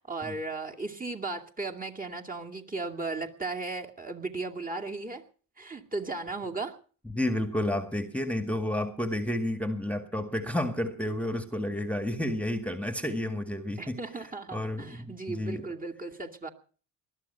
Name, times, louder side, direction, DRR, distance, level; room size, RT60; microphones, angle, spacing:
voice 1, 0.0-5.2 5.6-6.8 13.8-16.5, right 3 dB, 20° right, 1 dB, 2.4 m, -36 dB
voice 2, 7.1-14.0 14.5-15.7, left 1 dB, 5° left, 8 dB, 1.9 m, -31 dB
20.0 x 12.0 x 5.7 m, 0.42 s
hypercardioid pair, 60°, 47 cm